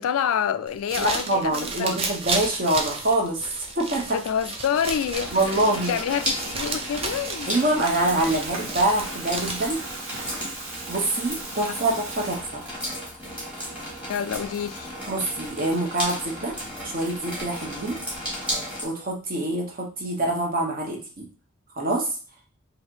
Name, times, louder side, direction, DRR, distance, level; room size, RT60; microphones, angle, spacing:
voice 1, 0.0-2.0 4.1-5.6 5.9-7.6 14.1-14.9, left 8 dB, 85° left, 0.3 m, -27 dB
sound 1, 0.7-9.9, right 3 dB, 25° right, 0.5 m, -33 dB
voice 2, 1.0-3.4 3.7-4.2 5.3-6.0 7.5-9.8 10.9-12.6 15.1-16.6 16.8-18.0 18.8-21.3 21.8-22.1, right 1 dB, 45° right, 1.0 m, -25 dB
Water tap faucet / Toilet flush, 4.8-12.9, right 3 dB, 65° right, 1.0 m, -39 dB
sound 2, 5.1-18.8, equal, 5° right, 1.4 m, -34 dB
3.3 x 2.6 x 4.5 m
head